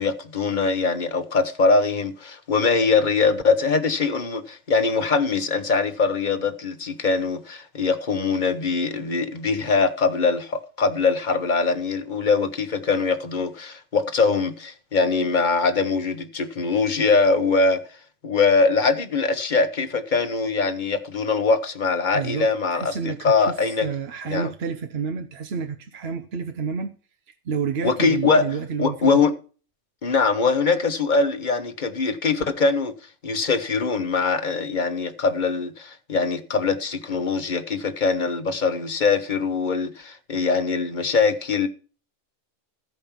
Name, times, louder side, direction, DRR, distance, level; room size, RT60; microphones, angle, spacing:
voice 1, 0.0-17.8 18.2-23.9 24.2-24.5 27.8-28.4 28.8-29.3 30.0-32.9 33.2-41.7, left 4 dB, 40° left, 1.2 m, -22 dB
voice 2, 22.1-26.9 27.5-29.1, right 6 dB, 55° right, 1.0 m, -30 dB
14.5 x 5.3 x 7.3 m
omnidirectional pair, 1.3 m